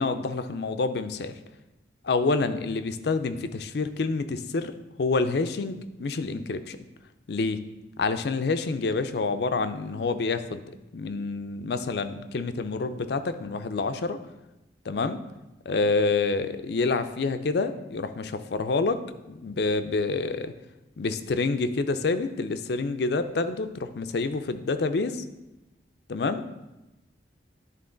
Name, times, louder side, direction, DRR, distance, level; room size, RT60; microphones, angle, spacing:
voice 1, 0.0-1.3 2.0-4.7 5.0-6.8 7.3-7.6 8.0-10.6 10.9-14.2 14.9-15.2 15.7-19.0 19.3-20.5 21.0-25.2 26.1-26.4, left 3 dB, 60° left, 10 dB, 0.4 m, -27 dB
11.0 x 3.7 x 3.8 m, 1.0 s
head